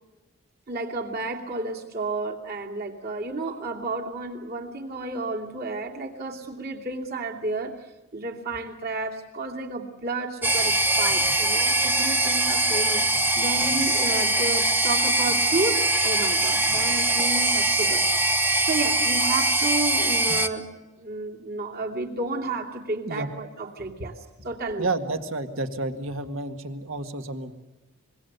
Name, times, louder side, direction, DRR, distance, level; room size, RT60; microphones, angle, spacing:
voice 1, 0.7-7.8 8.1-18.1 18.6-20.7 21.0-24.9, right 2 dB, 50° right, 1 dB, 2.8 m, -31 dB
sound 1, 10.4-20.5, right 2 dB, 10° right, 1.0 m, -22 dB
voice 2, 24.8-27.5, right 2 dB, 65° right, 7 dB, 1.9 m, -30 dB
25.5 x 22.5 x 6.8 m, 1.1 s
head